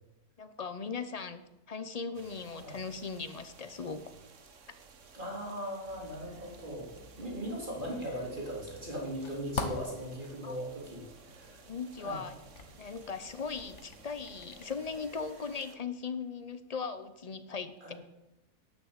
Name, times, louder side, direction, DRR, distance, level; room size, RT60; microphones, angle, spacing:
voice 1, 0.4-4.1 10.4-10.6 11.7-12.4 12.8-17.9, left 5 dB, 35° left, 11 dB, 0.7 m, -39 dB
sound 1, 2.1-15.8, right 5 dB, 55° right, 1.5 m, -56 dB
voice 2, 5.1-6.9 7.2-11.6 12.0-12.2 17.8-17.9, equal, 35° right, -1 dB, 3.7 m, -39 dB
sound 2, 5.9-15.1, left 4 dB, 55° left, 1.5 m, -46 dB
10.5 x 9.1 x 8.0 m, 0.95 s
omnidirectional pair, 1.5 m